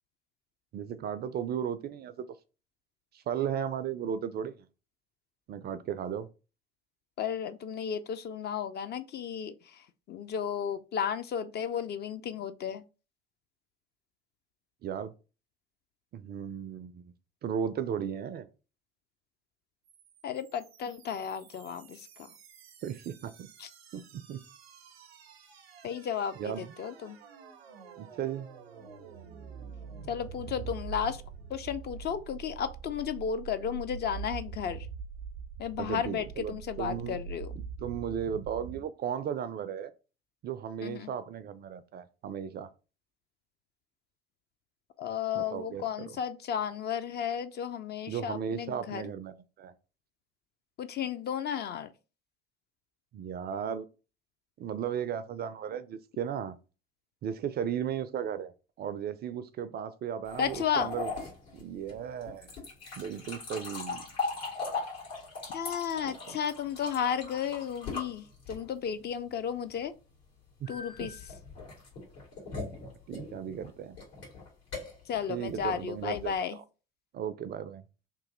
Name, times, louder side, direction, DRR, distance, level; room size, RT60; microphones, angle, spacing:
voice 1, 0.7-2.3 3.1-4.6 5.5-6.3 14.8-15.1 16.1-17.1 17.4-18.5 22.8-23.5 23.9-24.4 26.4-26.7 28.0-28.5 35.8-37.2 37.6-39.9 40.4-42.7 45.4-46.1 48.1-49.7 53.1-53.8 54.6-56.6 57.2-58.5 58.8-61.1 61.5-62.5 63.0-64.0 66.0-66.4 70.6-70.7 71.0-71.1 73.1-74.0 75.3-76.6 77.1-77.8, right 8 dB, 35° right, 0.4 m, -35 dB
voice 2, 7.2-12.8 20.2-22.3 23.6-23.7 25.8-27.2 30.1-31.2 31.5-34.9 35.6-37.5 40.8-41.1 45.0-49.0 50.8-51.9 60.4-60.9 65.5-69.9 70.7-71.2 75.1-76.6, left 8 dB, 35° left, 0.4 m, -33 dB
sound 1, 19.9-38.8, right 5 dB, 85° right, 0.6 m, -45 dB
sound 2, 60.3-68.9 70.7-76.4, left 4 dB, 75° left, 1.9 m, -39 dB
3.0 x 2.5 x 3.7 m
figure-of-eight pair, 60°, 30 cm